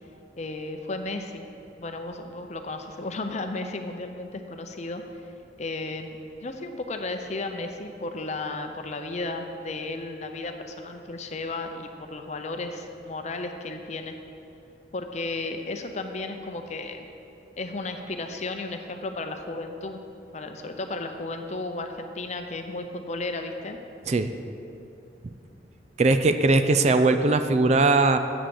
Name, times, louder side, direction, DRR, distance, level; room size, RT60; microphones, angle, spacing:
voice 1, 0.4-1.4 1.8-5.0 5.6-14.2 14.9-17.1 17.6-20.0 20.3-23.8, left 2 dB, 40° left, 6 dB, 0.6 m, -34 dB
voice 2, 26.0-28.2, right 3 dB, 35° right, 8 dB, 0.4 m, -20 dB
8.2 x 6.2 x 7.0 m, 2.6 s
head